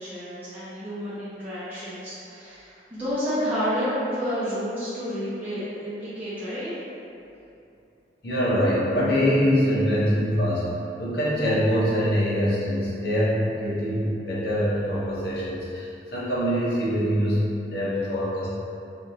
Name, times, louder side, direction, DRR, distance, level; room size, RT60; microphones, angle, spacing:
voice 1, 0.0-6.7, equal, 10° right, -14 dB, 0.6 m, -30 dB
voice 2, 8.2-10.6 11.0-18.5, equal, 65° left, -8 dB, 0.9 m, -24 dB
3.5 x 2.5 x 2.8 m, 2.7 s
head